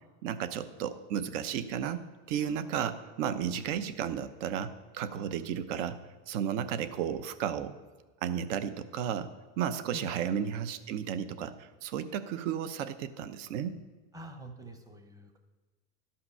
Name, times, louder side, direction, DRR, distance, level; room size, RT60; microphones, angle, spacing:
voice 1, 0.2-6.0 6.3-7.7 8.2-9.3 9.6-13.8, right 9 dB, 75° right, 12 dB, 0.8 m, -33 dB
voice 2, 14.1-15.4, right 1 dB, 10° right, 6 dB, 0.7 m, -46 dB
12.0 x 5.7 x 5.5 m, 1.3 s
supercardioid pair, 150°, 37 cm